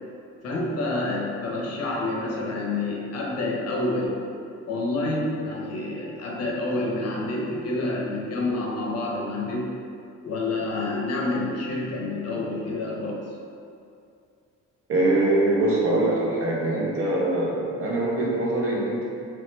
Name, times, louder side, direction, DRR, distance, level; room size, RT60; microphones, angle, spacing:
voice 1, 0.4-4.2 4.7-9.7 10.2-13.2, left 2 dB, 55° left, -2 dB, 0.6 m, -28 dB
voice 2, 14.9-19.1, right 2 dB, 50° right, -3 dB, 0.6 m, -23 dB
3.0 x 2.1 x 3.1 m, 2.4 s
cardioid pair, 90°, 30 cm